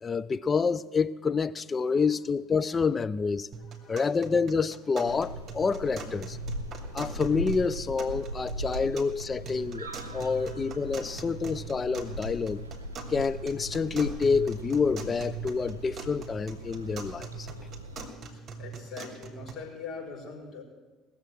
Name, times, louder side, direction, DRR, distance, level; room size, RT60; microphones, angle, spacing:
voice 1, 0.0-3.5 3.9-6.4 6.9-12.6 13.1-17.5, left 5 dB, 25° left, 0.5 m, -28 dB
sound 1, 3.5-19.5, right 4 dB, 30° right, 2.5 m, -43 dB
voice 2, 3.6-4.0 9.8-10.5 10.9-11.1 18.3-20.6, left 5 dB, 45° left, 5.7 m, -44 dB
sound 2, 5.0-18.1, right 1 dB, 80° right, 0.7 m, -40 dB
19.5 x 7.4 x 7.8 m
figure-of-eight pair, 60°, 0 cm